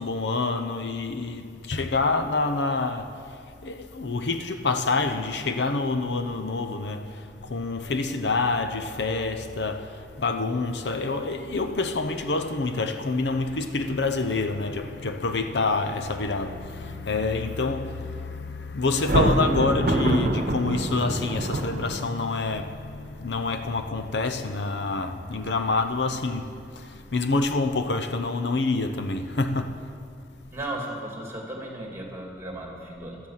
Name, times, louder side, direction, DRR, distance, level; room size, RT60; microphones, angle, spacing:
voice 1, 0.0-29.9, left 3 dB, 70° left, 0.8 m, -27 dB
Thunder, 19.0-22.3, right 1 dB, 50° right, 1.1 m, -25 dB
voice 2, 30.5-33.3, right 1 dB, 15° right, 2.5 m, -35 dB
15.0 x 12.5 x 5.8 m
head